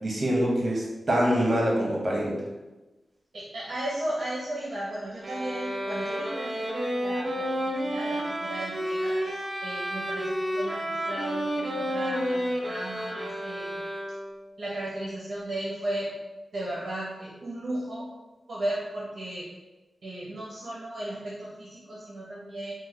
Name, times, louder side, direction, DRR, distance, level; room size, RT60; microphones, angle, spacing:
voice 1, 0.0-2.3, equal, 45° right, -3 dB, 1.1 m, -25 dB
voice 2, 3.3-13.8 14.6-16.1 16.5-18.1 18.5-19.5 20.0-22.7, right 1 dB, 65° right, -6 dB, 0.7 m, -35 dB
sound 1, 5.2-14.4, equal, 30° right, 0.6 m, -31 dB
3.1 x 2.2 x 3.7 m, 1.1 s
cardioid pair, 70°, 0 cm